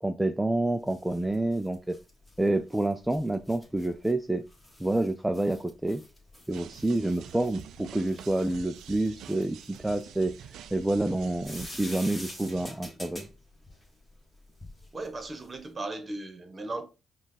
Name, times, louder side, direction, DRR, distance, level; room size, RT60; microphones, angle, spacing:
voice 1, 0.0-2.0 2.4-4.4 4.8-6.0 6.5-13.3, right 1 dB, 10° right, 0.4 m, -28 dB
sound 1, 0.7-15.7, left 1 dB, 10° left, 1.5 m, -48 dB
sound 2, 6.5-12.7, right 10 dB, 80° right, 0.3 m, -47 dB
voice 2, 14.9-16.8, right 2 dB, 30° right, 1.0 m, -37 dB
5.0 x 2.3 x 3.9 m
cardioid pair, 90°, 0 cm